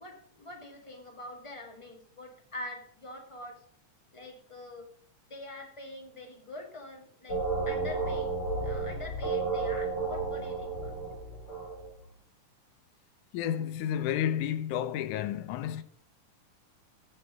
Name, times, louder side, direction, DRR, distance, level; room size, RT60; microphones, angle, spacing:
voice 1, 0.0-3.6 4.1-4.9 5.3-7.4 7.6-11.0, left 2 dB, 15° left, 1.3 m, -44 dB
sound 1, 7.3-12.0, right 3 dB, 40° left, 5.9 m, -32 dB
voice 2, 13.3-15.8, left 10 dB, 80° left, 2.1 m, -31 dB
15.0 x 5.5 x 5.0 m
omnidirectional pair, 3.7 m